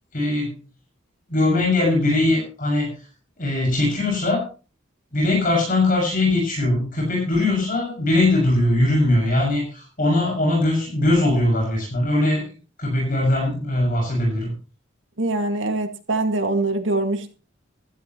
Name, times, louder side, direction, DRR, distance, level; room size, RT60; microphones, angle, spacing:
voice 1, 0.1-0.6 1.3-3.0 3.4-4.5 5.1-12.5 12.8-14.5, left 2 dB, 45° left, -1 dB, 6.5 m, -20 dB
voice 2, 15.2-17.3, right 2 dB, 75° right, 5 dB, 2.1 m, -23 dB
16.0 x 13.5 x 3.1 m, 0.35 s
head